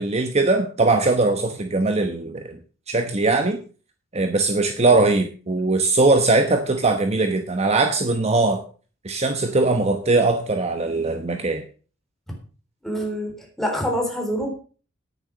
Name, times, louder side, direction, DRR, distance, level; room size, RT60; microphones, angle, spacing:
voice 1, 0.0-2.6 2.9-3.6 4.1-8.6 9.0-11.6, right 3 dB, 35° right, 6 dB, 1.0 m, -20 dB
voice 2, 12.8-14.5, equal, ahead, 0 dB, 3.9 m, -26 dB
9.7 x 9.1 x 6.3 m, 0.39 s
head